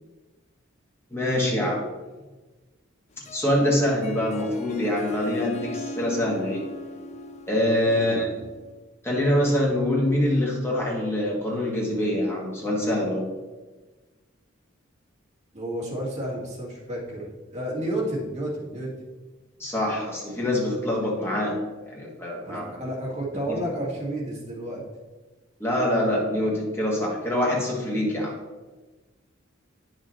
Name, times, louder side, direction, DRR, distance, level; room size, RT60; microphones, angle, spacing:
voice 1, 1.1-1.9 3.3-6.7 7.5-8.4 9.0-13.3 19.6-22.7 23.5-23.6 25.6-28.4, left 1 dB, 10° left, -3 dB, 1.7 m, -25 dB
Harp, 3.1-8.7, left 2 dB, 35° left, 0.4 m, -39 dB
voice 2, 7.9-8.2 15.5-18.9 22.4-24.8, right 1 dB, 35° right, -4 dB, 2.2 m, -31 dB
9.2 x 6.3 x 3.1 m, 1.2 s
head